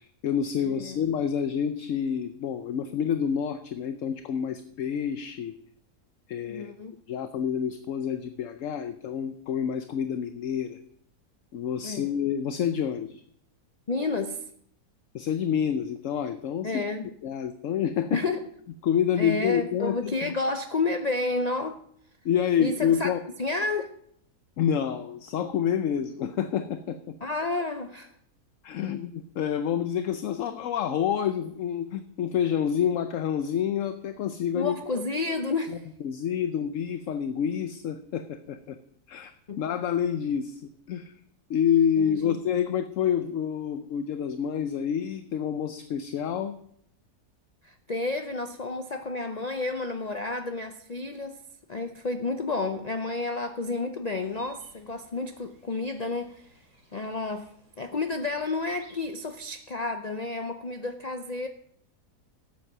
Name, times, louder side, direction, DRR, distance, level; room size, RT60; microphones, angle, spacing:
voice 1, 0.0-5.5 6.3-6.7 7.1-10.8 11.5-13.2 15.1-16.8 17.2-18.2 18.8-20.3 22.2-23.2 24.6-27.1 28.6-34.8 35.7-35.8 36.0-38.8 39.1-39.3 39.6-40.6 40.9-41.1 41.5-46.6, left 8 dB, 60° left, 0.9 m, -28 dB
voice 2, 0.6-1.0 6.4-7.0 11.8-12.1 13.9-14.4 16.6-17.1 18.1-18.5 19.2-21.8 22.6-23.1 23.4-23.9 27.2-28.1 34.5-35.9 39.5-39.6 42.0-42.4 47.6-51.4 51.7-56.6 56.9-57.5 57.8-61.5, left 3 dB, 85° left, 0.3 m, -31 dB
sound 1, 54.2-59.3, right 2 dB, 60° right, 3.4 m, -59 dB
12.5 x 8.4 x 6.0 m
omnidirectional pair, 1.7 m